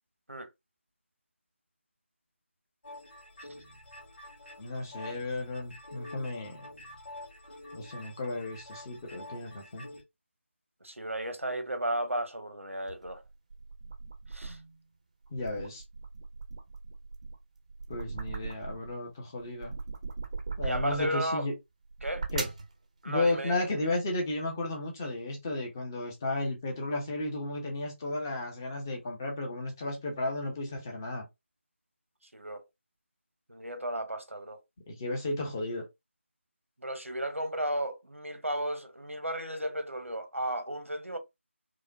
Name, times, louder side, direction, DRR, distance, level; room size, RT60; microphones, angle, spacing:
sound 1, 2.8-10.0, left 1 dB, 45° left, 2.0 m, -48 dB
voice 1, 4.6-6.7 7.7-9.9 15.3-15.8 17.9-19.7 20.6-21.5 22.3-22.5 23.1-31.2 34.9-35.8, left 2 dB, 15° left, 0.6 m, -33 dB
voice 2, 10.8-13.2 14.3-14.6 20.6-21.5 22.0-22.3 23.0-23.6 32.3-32.6 33.5-34.6 36.8-41.2, right 1 dB, 85° right, 1.0 m, -34 dB
sound 2, 12.9-14.8 15.2-19.0 19.4-21.2 21.8-22.7, right 4 dB, 30° right, 0.6 m, -39 dB
4.8 x 2.1 x 2.6 m
figure-of-eight pair, 165°, 7 cm